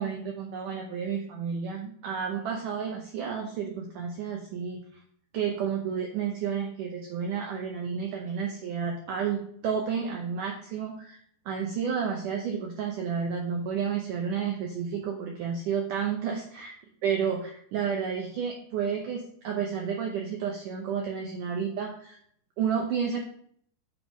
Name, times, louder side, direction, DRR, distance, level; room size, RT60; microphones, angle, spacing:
voice 1, 0.0-4.8 5.3-11.2 11.5-16.7 17.0-22.2 22.6-23.2, right 7 dB, 75° right, 2 dB, 1.9 m, -31 dB
7.7 x 5.4 x 6.1 m, 0.65 s
omnidirectional pair, 4.8 m